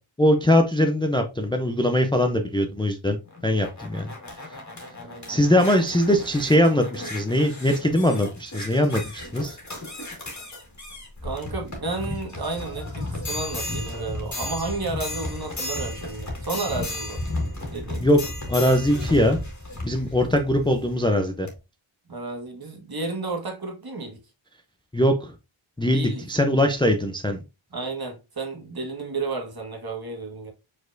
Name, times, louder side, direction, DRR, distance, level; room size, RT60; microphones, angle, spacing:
voice 1, 0.2-4.1 5.3-9.6 18.0-18.2 18.5-19.4 19.8-21.5 24.9-25.3 25.8-27.4, left 1 dB, 10° left, 0.5 m, -21 dB
sound 1, 3.3-20.9 21.5-21.6, left 2 dB, 35° left, 1.9 m, -34 dB
voice 2, 5.0-5.4 11.2-17.2 17.7-18.0 22.1-24.2 25.9-26.2 27.7-30.5, right 3 dB, 45° right, 1.6 m, -32 dB
5.0 x 4.1 x 2.5 m
wide cardioid pair, 95°, 49 cm